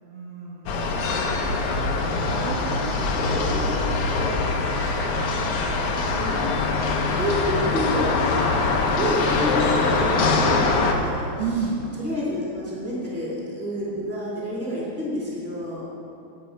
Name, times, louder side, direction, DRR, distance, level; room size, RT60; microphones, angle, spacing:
voice 1, 0.0-2.0 2.4-5.7 11.4-12.0, right 4 dB, 65° right, -3 dB, 1.9 m, -34 dB
sound 1, 0.7-10.9, left 3 dB, 65° left, 1.5 m, -23 dB
voice 2, 6.2-11.3 12.0-15.9, equal, 5° left, -7 dB, 1.9 m, -29 dB
9.2 x 9.1 x 5.3 m, 2.6 s
omnidirectional pair, 3.5 m